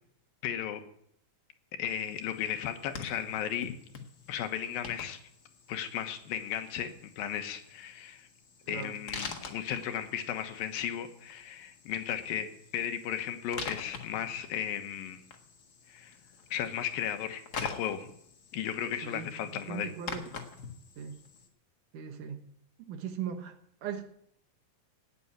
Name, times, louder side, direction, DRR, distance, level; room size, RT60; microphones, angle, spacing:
voice 1, 0.4-0.8 1.8-3.7 4.3-5.2 5.7-8.3 8.7-15.2 15.9-16.1 16.5-18.1 18.5-19.9, left 9 dB, 90° left, 8 dB, 3.0 m, -35 dB
sound 1, 1.9-21.5, left 5 dB, 50° left, 1.2 m, -46 dB
voice 2, 8.7-9.0 19.0-20.2 21.0-21.2 21.9-22.5 22.9-24.1, right 7 dB, 70° right, 7 dB, 2.6 m, -39 dB
18.0 x 7.0 x 8.9 m, 0.72 s
omnidirectional pair, 4.0 m